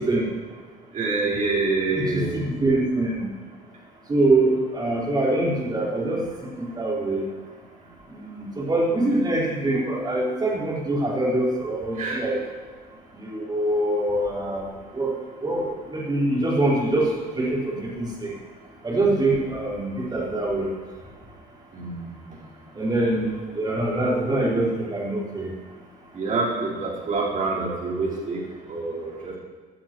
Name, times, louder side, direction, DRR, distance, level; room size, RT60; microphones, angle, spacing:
voice 1, 0.9-2.3 12.0-12.2 21.7-22.0 26.2-28.4 28.7-29.4, right 3 dB, 50° right, -5 dB, 4.1 m, -26 dB
voice 2, 1.6-2.0 2.3-3.2 4.1-6.2 6.7-7.2 8.4-12.4 13.2-14.6 15.0-15.1 15.4-15.6 15.9-17.1 17.4-18.3 18.8-20.7 22.8-25.5, right 2 dB, 25° right, -5 dB, 4.4 m, -24 dB
17.5 x 11.5 x 3.1 m, 1.5 s
cardioid pair, 110°, 17 cm